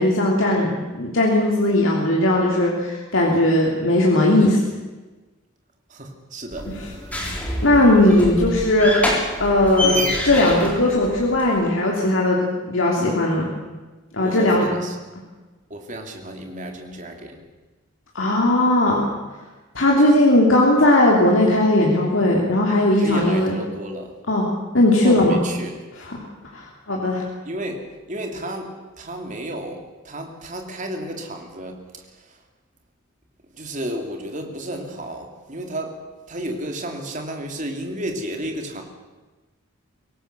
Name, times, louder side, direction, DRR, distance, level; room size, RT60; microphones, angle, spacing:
voice 1, 0.0-4.6 7.6-8.9 9.4-12.4 12.7-13.5 14.1-14.7 18.1-19.0 19.7-23.5 24.3-24.5 24.7-25.4 26.1-26.2 26.5-27.2, left 1 dB, 75° left, -2 dB, 3.2 m, -18 dB
voice 2, 5.9-6.7 14.2-15.0 15.7-17.4 23.0-24.1 25.0-25.8 27.4-31.8 33.6-36.0 36.3-38.8, right 1 dB, 40° right, 3 dB, 3.0 m, -32 dB
sound 1, 6.5-11.6, left 1 dB, 5° left, 4.0 m, -27 dB
23.5 x 18.0 x 6.9 m, 1.2 s
head